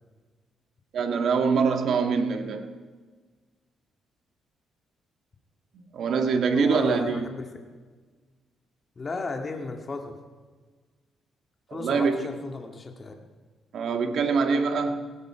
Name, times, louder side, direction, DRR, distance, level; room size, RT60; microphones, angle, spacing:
voice 1, 0.9-2.7 5.7-7.2 11.7-12.3 13.7-15.2, right 5 dB, 65° right, 6 dB, 1.8 m, -24 dB
voice 2, 6.5-7.5 9.0-10.2 11.7-13.1, left 3 dB, 35° left, 3 dB, 2.1 m, -34 dB
17.0 x 17.0 x 5.0 m, 1.4 s
cardioid pair, 90°, 0 cm